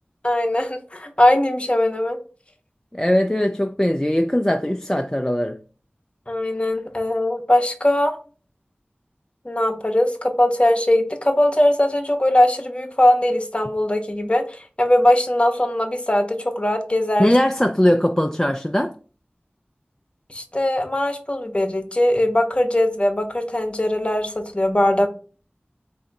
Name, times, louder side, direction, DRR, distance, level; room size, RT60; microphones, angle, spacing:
voice 1, 0.2-2.2 6.3-8.2 9.4-17.3 20.3-25.1, left 1 dB, 30° left, 0.7 m, -20 dB
voice 2, 2.9-5.6 17.2-18.9, left 1 dB, 15° left, 0.3 m, -20 dB
3.6 x 2.6 x 4.5 m
wide cardioid pair, 50°, 4 cm